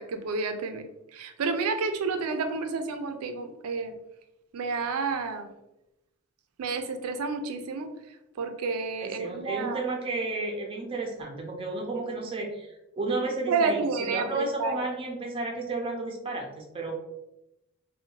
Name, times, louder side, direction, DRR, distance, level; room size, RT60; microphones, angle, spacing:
voice 1, 0.0-4.0 4.5-5.5 6.6-7.9 8.4-9.8 13.5-14.8, right 4 dB, 85° right, 7 dB, 0.4 m, -30 dB
voice 2, 9.0-16.9, right 2 dB, 25° right, 0 dB, 0.4 m, -32 dB
2.7 x 2.1 x 2.8 m, 0.90 s
head